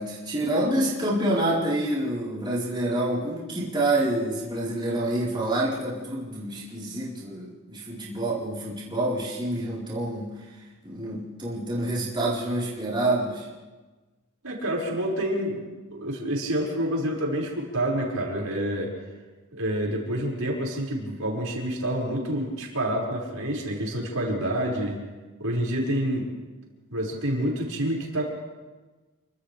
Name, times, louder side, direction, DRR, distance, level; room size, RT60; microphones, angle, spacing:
voice 1, 0.0-10.3 10.8-13.5, right 1 dB, 20° right, -7 dB, 4.5 m, -27 dB
voice 2, 14.4-15.7 15.9-18.9 19.5-25.0 25.4-26.3 26.9-28.3, right 1 dB, 75° right, -3 dB, 5.9 m, -28 dB
29.5 x 25.0 x 3.5 m, 1.2 s
head